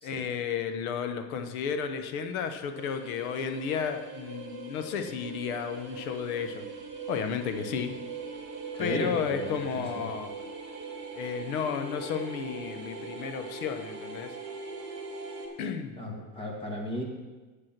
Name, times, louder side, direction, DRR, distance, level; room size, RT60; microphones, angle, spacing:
voice 1, 0.0-6.6 7.1-7.9 8.8-10.3 11.1-14.3 15.6-15.9, left 7 dB, 75° left, 8 dB, 1.2 m, -33 dB
sound 1, 2.8-15.5, right 4 dB, 25° right, 2.5 m, -41 dB
voice 2, 8.7-10.1 16.0-17.0, equal, 10° left, 0 dB, 1.6 m, -35 dB
8.3 x 7.9 x 6.0 m, 1.2 s
supercardioid pair, 165°, 43 cm